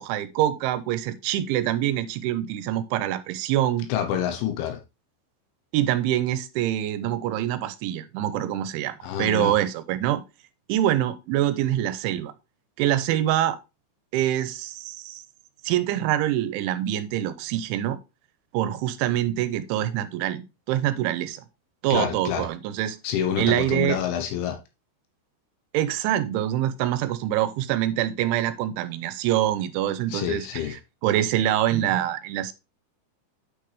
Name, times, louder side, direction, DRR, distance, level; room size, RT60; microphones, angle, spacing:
voice 1, 0.0-3.9 5.7-10.2 10.7-12.3 12.8-13.6 14.1-15.2 15.6-18.0 18.5-21.4 21.8-23.0 23.4-24.0 25.7-32.5, right 12 dB, 85° right, 3.2 m, -25 dB
voice 2, 3.9-4.8 9.0-9.5 21.9-22.5 23.0-24.6 30.1-30.8, left 9 dB, 85° left, 3.4 m, -27 dB
9.0 x 5.7 x 3.3 m
omnidirectional pair, 5.4 m